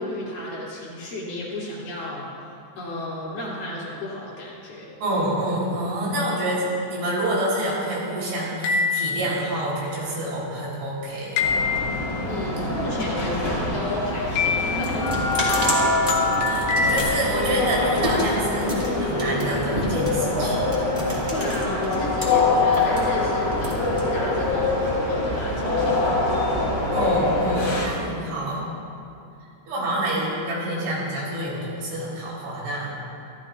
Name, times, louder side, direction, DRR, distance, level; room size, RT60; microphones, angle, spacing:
voice 1, 0.0-2.3 2.8-5.0 12.3-15.2 15.5-15.7 21.3-26.4 29.7-29.9, left 1 dB, 50° left, -7 dB, 4.3 m, -32 dB
voice 2, 5.0-11.6 16.3-20.6 26.9-28.7 29.7-32.9, right 1 dB, 75° right, -6 dB, 6.4 m, -27 dB
sound 1, 8.6-9.4 11.4-12.1 14.4-15.0 15.5-17.0, left 5 dB, 80° left, 3.4 m, -25 dB
sound 2, 11.4-27.9, left 2 dB, 20° left, 2.6 m, -24 dB
sound 3, 14.1-22.3 22.6-24.5, equal, 15° right, 2.4 m, -31 dB
26.5 x 15.0 x 2.5 m, 2.6 s
omnidirectional pair, 5.3 m